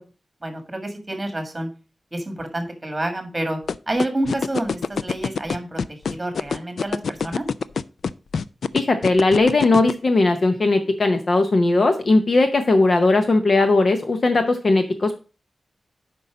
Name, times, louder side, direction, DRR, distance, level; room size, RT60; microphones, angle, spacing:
voice 1, 0.4-1.7 2.1-3.6 3.9-7.4, right 1 dB, 15° right, 5 dB, 1.8 m, -28 dB
sound 1, 3.7-9.9, left 5 dB, 75° left, 0.3 m, -24 dB
voice 2, 8.7-15.2, left 2 dB, 45° left, 7 dB, 0.7 m, -18 dB
8.4 x 5.4 x 4.9 m, 0.34 s
wide cardioid pair, 180°, 0 cm